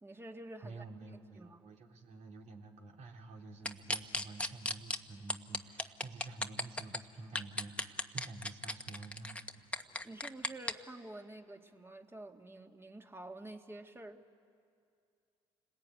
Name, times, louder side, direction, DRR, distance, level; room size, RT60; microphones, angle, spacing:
voice 1, 0.0-0.8 1.3-1.7 10.0-14.2, right 1 dB, 20° right, 4 dB, 2.3 m, -49 dB
voice 2, 0.6-9.7, right 3 dB, 60° right, 1 dB, 3.5 m, -49 dB
sound 1, 3.7-5.0 5.3-7.0 7.4-10.7, left 1 dB, 10° left, 1.4 m, -35 dB
29.5 x 20.0 x 9.4 m, 2.4 s
hypercardioid pair, 60°, 13 cm